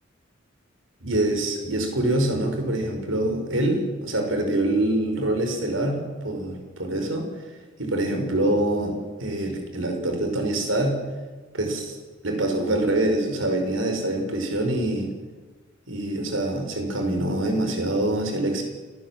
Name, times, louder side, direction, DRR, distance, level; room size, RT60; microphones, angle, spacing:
voice 1, 1.0-7.3 7.8-11.0 11.5-12.0 12.2-15.1 15.9-18.6, right 1 dB, 90° right, 4 dB, 5.7 m, -25 dB
28.0 x 18.5 x 7.9 m, 1.3 s
head